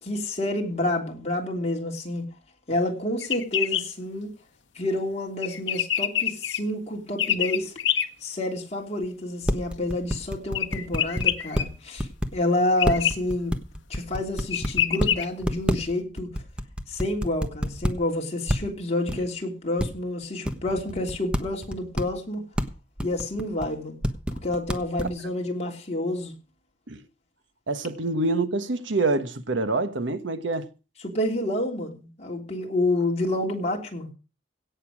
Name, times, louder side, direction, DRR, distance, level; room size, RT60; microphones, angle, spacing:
voice 1, 0.0-2.2 2.7-4.3 4.7-7.7 8.2-13.5 13.9-16.3 16.9-22.4 23.0-24.0 24.4-26.3 31.0-34.1, left 1 dB, 35° left, 3.2 m, -28 dB
sound 1, 3.2-3.8 5.4-6.6 7.2-8.1 10.5-11.6 12.8-13.1 14.1-14.2 14.5-15.2, left 10 dB, 70° left, 1.1 m, -25 dB
sound 2, 9.0-9.1 9.4-11.6 12.0-12.3 12.8-15.1 15.4-17.9 18.5-18.7 19.1-19.2 19.8-19.9 20.5-22.2 22.6-22.7 23.0-23.7 24.0-25.1, equal, 5° right, 1.2 m, -27 dB
voice 2, 27.7-30.7, right 3 dB, 75° right, 1.3 m, -26 dB
17.0 x 6.8 x 6.2 m
head